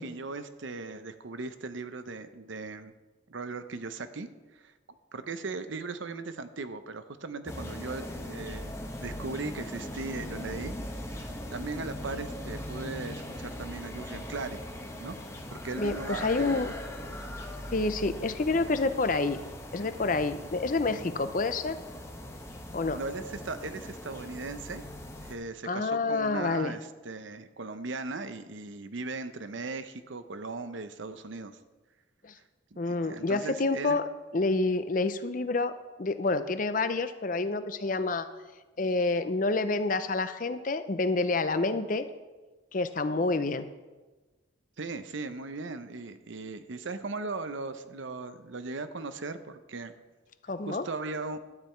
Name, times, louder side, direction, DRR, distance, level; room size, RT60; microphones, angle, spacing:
voice 1, 0.0-2.9 3.3-4.3 4.5-4.7 5.1-8.7 9.0-10.7 11.2-14.6 15.0-15.2 15.5-16.6 22.9-24.8 25.2-31.6 32.9-34.0 44.8-49.9 50.6-51.4, right 3 dB, 70° right, 11 dB, 0.7 m, -38 dB
sound 1, 7.5-25.3, left 1 dB, 15° left, 1.0 m, -40 dB
voice 2, 15.8-16.7 17.7-19.4 19.7-21.8 22.7-23.0 25.6-26.7 32.2-32.3 32.8-34.1 34.3-38.3 38.8-42.1 42.7-43.7 50.5-50.9, left 3 dB, 40° left, 11 dB, 0.5 m, -28 dB
12.0 x 9.2 x 4.4 m, 1.2 s
head